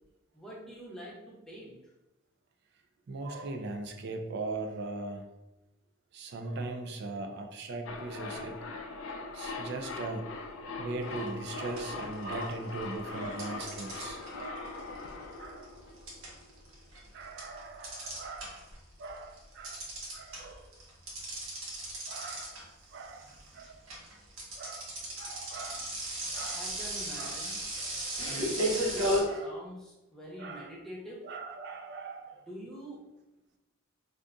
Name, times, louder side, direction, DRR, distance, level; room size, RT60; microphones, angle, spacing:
voice 1, 0.3-1.8 26.5-27.6 28.6-31.2 32.5-33.0, equal, 5° left, -5 dB, 0.8 m, -45 dB
voice 2, 3.1-5.2 6.1-8.6 9.3-10.3 10.8-14.8 15.4-15.7 17.1-18.7 19.0-20.7 22.1-23.9 24.5-26.7 27.2-27.5 27.8-28.0 28.3-28.4 29.2-29.6 30.4-30.7 31.2-32.5, right 3 dB, 55° right, 4 dB, 0.4 m, -40 dB
sound 1, 7.9-16.7 16.9-17.0, left 3 dB, 65° left, 0.4 m, -41 dB
sound 2, 11.2-11.4 11.8-12.7 13.4-18.8 19.1-29.2, equal, 75° right, 0.9 m, -35 dB
2.6 x 2.4 x 3.5 m, 0.97 s
head